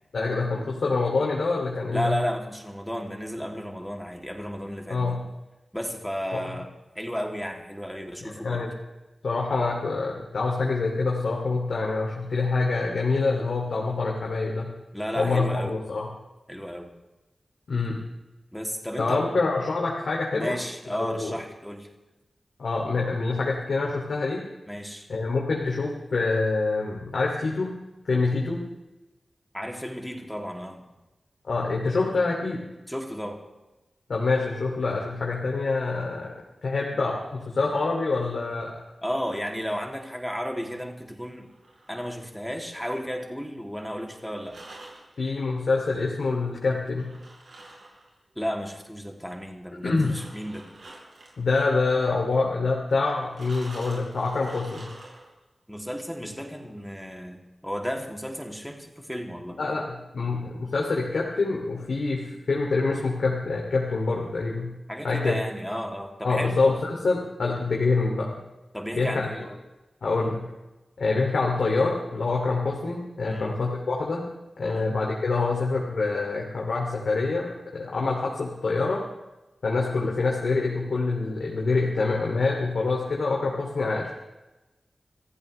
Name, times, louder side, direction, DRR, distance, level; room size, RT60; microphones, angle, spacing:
voice 1, 0.1-2.2 4.9-5.2 6.3-6.4 8.2-8.7 9.2-14.7 15.1-16.1 17.7-18.0 19.0-20.6 21.0-21.3 22.6-24.4 25.1-27.7 28.0-28.6 31.5-32.6 34.1-36.3 36.6-38.7 45.2-47.1 49.8-50.1 51.4-54.9 59.6-64.7 65.0-65.3 66.2-68.4 68.9-69.3 70.0-70.4 71.0-74.2 74.6-79.0 79.6-84.1, left 3 dB, 85° left, -2 dB, 2.6 m, -26 dB
voice 2, 1.9-5.2 5.7-6.7 6.9-8.7 14.9-15.7 16.5-16.9 18.5-19.3 20.3-21.9 24.7-25.1 29.5-30.8 32.9-33.4 39.0-41.5 41.9-44.6 48.3-50.7 55.7-59.6 64.9-66.6 68.7-69.6 73.2-73.5 74.6-74.9, equal, 5° left, 1 dB, 2.8 m, -33 dB
sound 1, 41.4-42.8 44.4-45.1 47.0-48.2 49.8-51.4 53.3-55.4, right 2 dB, 85° right, 5.4 m, -47 dB
26.5 x 15.5 x 3.3 m, 1.1 s
wide cardioid pair, 70°, 0 cm